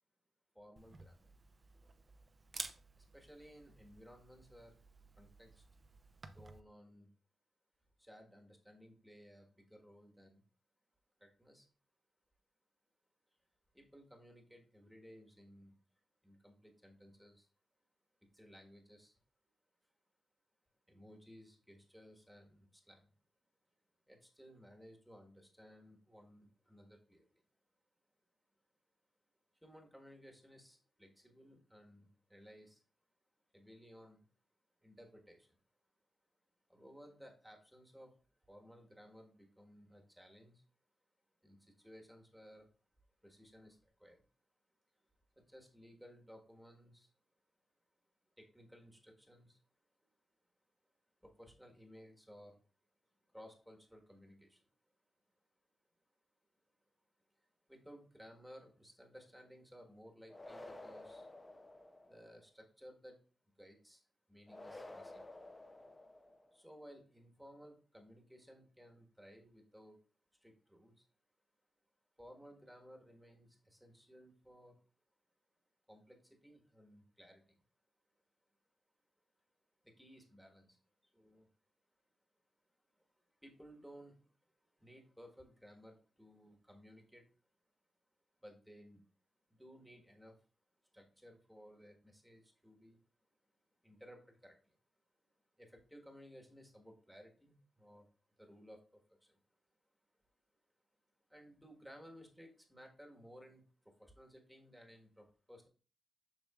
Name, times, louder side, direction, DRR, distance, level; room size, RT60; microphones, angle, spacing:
voice 1, 0.5-1.3 3.0-4.8 5.2-5.6 6.3-7.1 8.0-10.4 11.2-11.7 13.7-15.8 16.2-17.5 18.2-19.2 20.9-23.1 24.1-27.4 29.5-32.8 33.5-34.2 34.8-35.6 36.7-38.2 38.5-40.6 41.4-42.7 43.2-44.3 44.9-45.0 45.4-47.1 48.4-49.6 51.2-52.6 53.3-54.7 57.3-61.3 62.0-63.2 63.6-65.3 66.5-70.0 70.4-71.1 72.2-74.8 75.9-77.5 79.8-81.5 82.9-84.3 84.6-87.4 88.4-89.1 89.5-90.4 90.9-93.0 93.8-94.8 95.6-99.4 101.3-105.7, equal, ahead, 2 dB, 1.4 m, -59 dB
Camera, 0.8-6.6, right 3 dB, 35° right, 0.6 m, -52 dB
sound 1, 60.3-62.4 64.5-66.5, left 2 dB, 20° left, 0.6 m, -52 dB
7.1 x 6.2 x 2.4 m, 0.38 s
wide cardioid pair, 115°, 0 cm